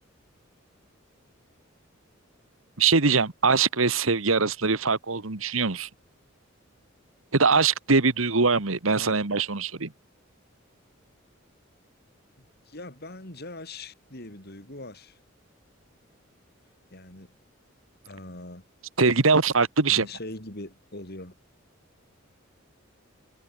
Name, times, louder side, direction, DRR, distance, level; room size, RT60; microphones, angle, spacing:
voice 1, 2.8-5.9 7.3-9.9 19.0-20.1, right 4 dB, 85° right, 1.7 m, -22 dB
voice 2, 12.4-15.2 16.9-17.4 18.0-18.6 19.9-21.3, left 2 dB, 50° left, 4.9 m, -41 dB
head